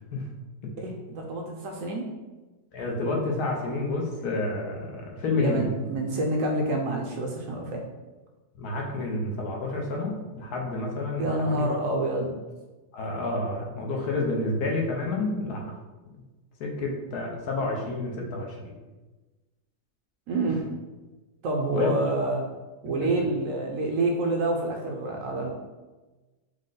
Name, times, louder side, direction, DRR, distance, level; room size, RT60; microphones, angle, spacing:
voice 1, 0.8-2.1 5.4-7.8 11.2-12.3 20.3-20.6 21.4-22.5 22.8-25.5, right 2 dB, 70° right, 1 dB, 0.9 m, -27 dB
voice 2, 2.7-5.6 8.6-11.7 12.9-15.6 16.6-18.6 21.7-21.9, left 2 dB, 75° left, 0 dB, 1.3 m, -29 dB
4.9 x 2.1 x 3.8 m, 1.2 s
omnidirectional pair, 1.7 m